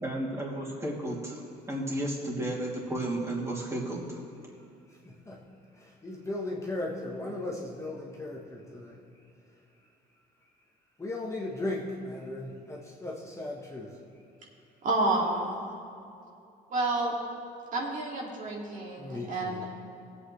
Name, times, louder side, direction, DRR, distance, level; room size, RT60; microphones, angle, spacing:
voice 1, 0.0-1.4 1.7-4.3, right 1 dB, 15° right, -4 dB, 2.7 m, -33 dB
voice 2, 4.9-5.4 5.8-9.1 11.0-14.0 19.0-19.7, left 2 dB, 15° left, -3 dB, 1.3 m, -37 dB
voice 3, 14.8-15.7 16.7-17.1 17.7-19.7, right 2 dB, 50° right, -2 dB, 2.3 m, -29 dB
19.0 x 8.4 x 3.2 m, 2.6 s
cardioid pair, 110°, 17 cm